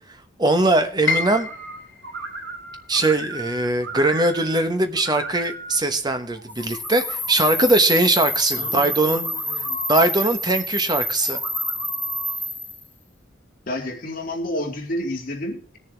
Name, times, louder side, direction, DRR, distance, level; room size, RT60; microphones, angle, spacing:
voice 1, 0.4-1.5 2.9-9.2 9.9-11.4, right 2 dB, 25° right, 8 dB, 1.1 m, -21 dB
Piano, 1.1-7.0 7.3-8.5 8.9-9.0 9.7-10.0, left 4 dB, 80° left, 1.9 m, -33 dB
sound 1, 1.1-1.8 2.0-4.7 4.9-5.8 6.3-7.3 8.3-10.1 11.2-12.4, right 2 dB, 65° right, 2.5 m, -35 dB
sound 2, 6.5-12.8, left 1 dB, 10° left, 0.6 m, -28 dB
voice 2, 8.6-9.8 13.7-15.8, left 1 dB, 50° left, 1 dB, 2.4 m, -30 dB
20.5 x 7.0 x 3.4 m, 0.43 s
head